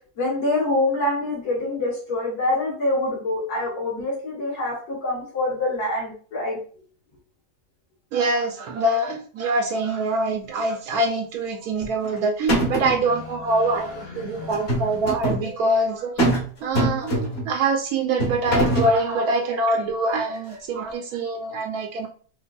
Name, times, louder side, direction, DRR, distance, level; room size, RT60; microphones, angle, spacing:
voice 1, 0.2-6.6 14.1-14.5, left 2 dB, 60° left, -7 dB, 2.0 m, -25 dB
voice 2, 8.1-16.3 16.6-22.1, right 2 dB, 70° right, 3 dB, 1.0 m, -24 dB
sound 1, 11.8-12.2 12.5-13.0 14.5-15.4 16.2-16.5 16.8-17.5 18.2-19.0, right 1 dB, 40° left, 1.2 m, -23 dB
4.8 x 2.3 x 2.3 m, 0.42 s
omnidirectional pair, 1.8 m